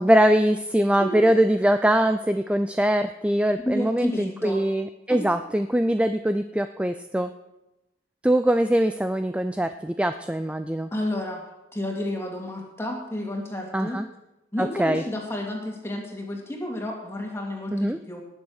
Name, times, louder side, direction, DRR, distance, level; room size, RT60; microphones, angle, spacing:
voice 1, 0.0-7.3 8.2-10.9 13.7-14.1 14.6-15.0 17.7-18.0, right 1 dB, 5° right, 9 dB, 0.3 m, -22 dB
voice 2, 3.6-4.6 5.1-5.2 10.9-11.4 11.7-14.0 14.5-18.2, left 1 dB, 15° left, 0 dB, 2.4 m, -31 dB
19.0 x 7.1 x 6.4 m, 0.95 s
head